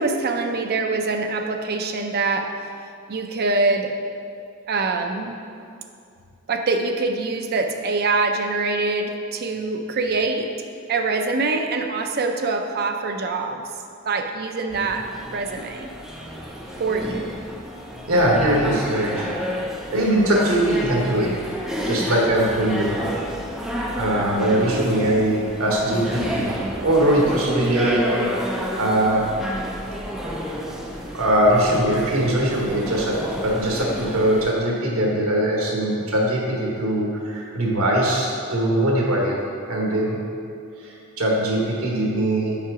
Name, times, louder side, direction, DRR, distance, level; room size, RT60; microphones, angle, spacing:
voice 1, 0.0-2.6 3.1-3.9 4.7-5.4 6.5-10.5 10.9-13.6 14.1-15.9 16.8-17.3 32.0-32.1, right 3 dB, 50° right, 5 dB, 0.5 m, -24 dB
sound 1, 14.7-34.5, equal, ahead, 0.6 m, -30 dB
voice 2, 18.1-19.3 19.9-21.3 21.9-23.0 23.9-26.5 26.8-28.0 28.8-29.3 31.1-39.4 39.7-40.2 40.8-42.6, right 1 dB, 80° right, -2 dB, 1.3 m, -21 dB
5.7 x 4.9 x 4.8 m, 2.4 s
head